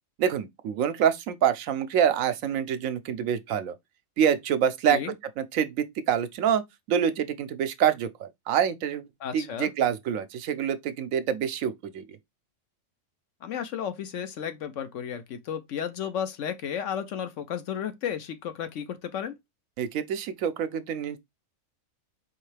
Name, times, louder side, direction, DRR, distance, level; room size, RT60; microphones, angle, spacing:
voice 1, 0.2-3.7 4.2-5.0 5.4-12.0 19.8-21.2, right 8 dB, 75° right, 1.0 m, -26 dB
voice 2, 9.2-9.7 13.4-19.4, left 8 dB, 65° left, 1.0 m, -33 dB
4.6 x 3.1 x 3.2 m
omnidirectional pair, 1.4 m